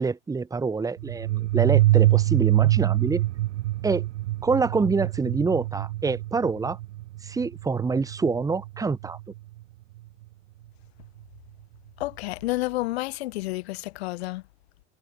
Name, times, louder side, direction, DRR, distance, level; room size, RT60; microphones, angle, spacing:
voice 1, 0.0-3.2 3.8-4.1 4.4-6.8 7.2-9.2, right 4 dB, 10° right, 0.8 m, -26 dB
sound 1, 1.0-9.4, right 16 dB, 70° right, 0.6 m, -25 dB
voice 2, 12.0-14.4, left 19 dB, 65° left, 0.9 m, -30 dB
figure-of-eight pair, 80°, 35 cm